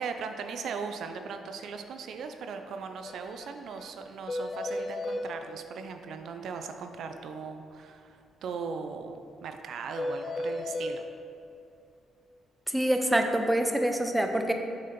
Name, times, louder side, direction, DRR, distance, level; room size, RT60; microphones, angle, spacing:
voice 1, 0.0-11.0, right 5 dB, 70° right, 6 dB, 0.4 m, -38 dB
sound 1, 3.0-3.1 3.4-3.5 3.8-3.9 4.3-5.3 10.0-11.0, left 1 dB, 40° left, 0.5 m, -33 dB
voice 2, 12.7-14.5, right 1 dB, 5° right, 4 dB, 0.6 m, -26 dB
6.3 x 4.2 x 5.2 m, 2.6 s
cardioid pair, 90°, 0 cm